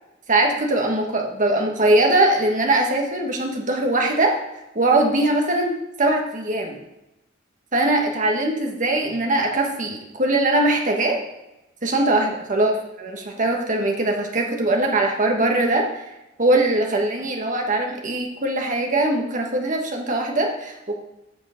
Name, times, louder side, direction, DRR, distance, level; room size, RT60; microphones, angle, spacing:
voice 1, 0.3-4.4 4.7-6.8 7.7-11.2 11.8-12.7 13.0-15.9 16.4-21.0, right 2 dB, 40° right, 2 dB, 1.4 m, -21 dB
8.0 x 7.0 x 5.1 m, 0.93 s
head